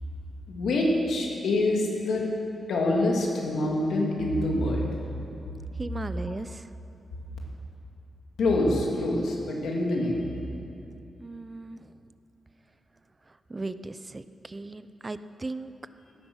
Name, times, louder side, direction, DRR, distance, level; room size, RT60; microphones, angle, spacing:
voice 1, 0.5-2.3 2.7-4.9 6.3-6.4 8.4-10.3, left 2 dB, 85° left, -1 dB, 2.7 m, -25 dB
voice 2, 5.8-6.6 11.2-11.8 13.5-15.7, right 2 dB, 20° right, 12 dB, 0.5 m, -37 dB
17.0 x 10.0 x 6.4 m, 2.7 s
wide cardioid pair, 145°, 0 cm